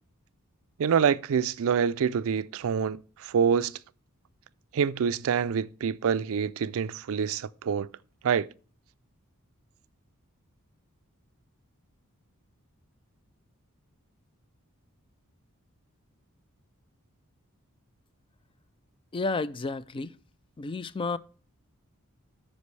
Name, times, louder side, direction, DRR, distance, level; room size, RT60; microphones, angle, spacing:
voice 1, 0.8-3.8 4.7-7.9 8.2-8.5, right 7 dB, 65° right, 0.4 m, -26 dB
voice 2, 19.1-20.1 20.6-21.2, left 3 dB, 25° left, 0.3 m, -31 dB
13.0 x 5.2 x 3.2 m
head